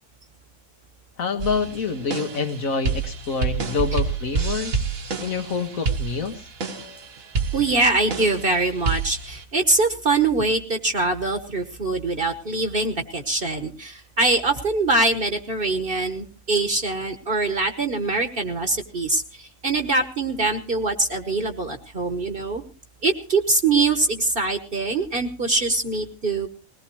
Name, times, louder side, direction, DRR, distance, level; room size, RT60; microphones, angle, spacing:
voice 1, 1.2-4.8 5.2-6.4, left 4 dB, 80° left, 5 dB, 2.0 m, -27 dB
sound 1, 1.4-9.4, right 4 dB, 80° right, 1.9 m, -28 dB
voice 2, 7.5-22.6 23.0-26.5, right 3 dB, 45° right, 7 dB, 1.2 m, -23 dB
20.5 x 18.0 x 3.0 m, 0.34 s
omnidirectional pair, 1.4 m